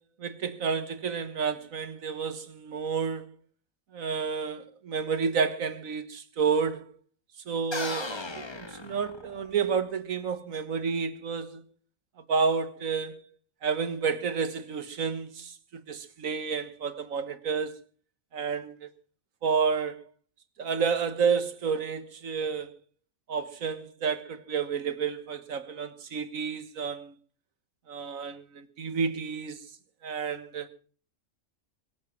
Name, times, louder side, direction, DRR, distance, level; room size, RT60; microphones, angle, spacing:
voice 1, 0.2-3.3 3.9-6.9 7.5-11.6 12.3-13.2 13.6-17.8 18.3-18.9 19.4-20.0 20.6-22.7 23.3-27.1 27.9-29.6 30.0-30.7, right 5 dB, 85° right, 1.7 m, -30 dB
sound 1, 7.7-9.6, left 2 dB, 20° left, 1.1 m, -36 dB
23.0 x 8.4 x 6.0 m
omnidirectional pair, 1.4 m